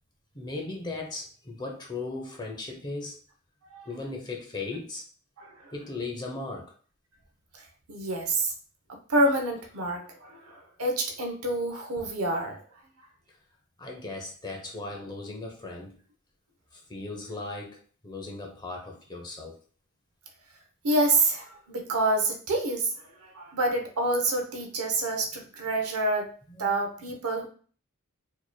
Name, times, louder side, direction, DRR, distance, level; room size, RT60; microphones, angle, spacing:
voice 1, 0.3-3.2 3.8-5.0 5.7-6.7 13.8-15.9 16.7-17.8 18.0-19.6 26.5-26.7 27.0-27.1, left 3 dB, 20° left, 0 dB, 0.8 m, -37 dB
voice 2, 5.4-5.7 7.9-8.5 9.1-12.6 20.8-22.9 23.2-26.3 26.6-27.5, right 2 dB, 85° right, 3 dB, 0.9 m, -27 dB
4.6 x 3.0 x 2.2 m, 0.43 s
head